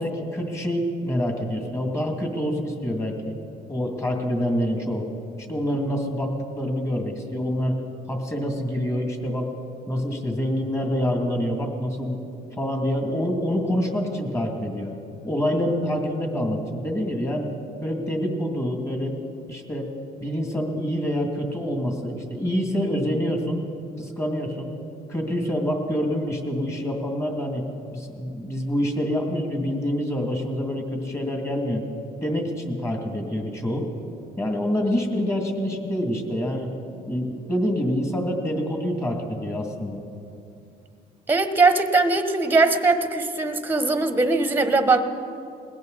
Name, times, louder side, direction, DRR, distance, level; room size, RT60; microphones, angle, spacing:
voice 1, 0.0-3.3 3.7-5.1 5.5-7.8 8.1-9.5 9.9-12.2 12.6-14.9 15.2-17.5 17.8-19.1 19.5-19.9 20.2-23.6 24.0-24.7 25.1-27.6 27.9-31.8 32.2-33.9 34.4-36.7 37.1-40.0, equal, 15° left, 2 dB, 2.5 m, -26 dB
voice 2, 41.3-45.0, right 3 dB, 10° right, 8 dB, 1.1 m, -20 dB
20.5 x 17.5 x 4.1 m, 2.6 s
cardioid pair, 110°, 17 cm